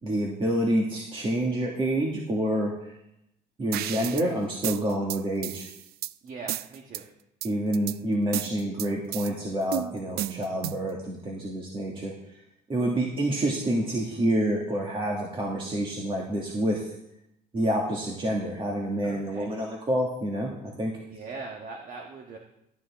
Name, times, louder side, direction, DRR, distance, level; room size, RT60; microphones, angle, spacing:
voice 1, 0.0-2.9 3.6-5.7 7.4-12.1 12.7-16.8 17.5-20.9, right 1 dB, 30° right, -2 dB, 2.0 m, -28 dB
sound 1, 3.7-4.3 4.6-6.1 6.5-7.0 7.4-8.0 8.3-9.3 9.7-10.9, right 14 dB, 70° right, 0.4 m, -33 dB
voice 2, 6.2-7.0 19.0-19.5 21.1-22.4, right 4 dB, 50° right, 1 dB, 1.5 m, -40 dB
12.5 x 12.0 x 3.6 m, 0.81 s
cardioid pair, 110°, 17 cm